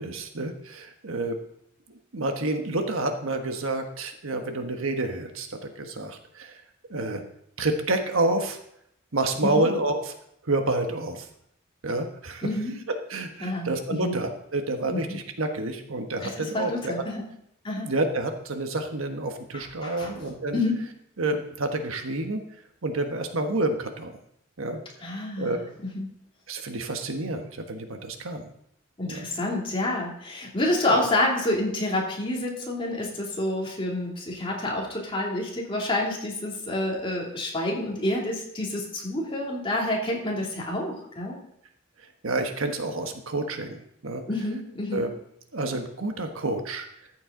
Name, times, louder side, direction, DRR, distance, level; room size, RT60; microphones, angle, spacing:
voice 1, 0.0-1.4 2.1-6.6 6.9-7.2 7.6-8.6 9.1-10.1 10.4-11.3 11.8-12.5 12.9-16.9 17.8-20.6 21.2-22.4 22.8-24.2 24.6-24.8 25.4-25.6 26.5-28.5 29.1-29.3 30.9-31.0 42.2-44.2 44.9-45.1 45.5-46.9, right 2 dB, 85° right, 5 dB, 1.3 m, -29 dB
voice 2, 12.4-12.8 13.4-14.1 14.9-15.0 16.2-17.3 17.6-17.9 19.5-20.8 25.0-25.6 25.9-26.1 29.0-41.4 44.3-45.0, left 1 dB, 25° left, -3 dB, 2.7 m, -28 dB
14.0 x 7.9 x 3.8 m, 0.74 s
head